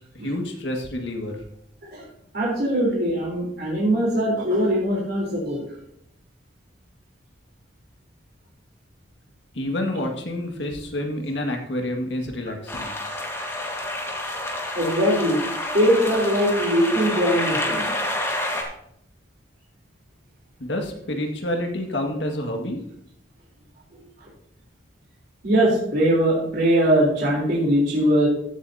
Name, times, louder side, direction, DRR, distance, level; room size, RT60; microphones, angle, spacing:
voice 1, 0.1-1.3 9.5-12.9 20.6-22.8, left 1 dB, 70° left, 3 dB, 1.9 m, -28 dB
voice 2, 2.3-5.6 14.8-15.4 15.7-17.9 25.4-28.3, equal, 55° right, -3 dB, 3.7 m, -21 dB
sound 1, 12.7-18.6, left 1 dB, 15° left, 1.7 m, -28 dB
15.0 x 8.2 x 2.8 m, 0.72 s
head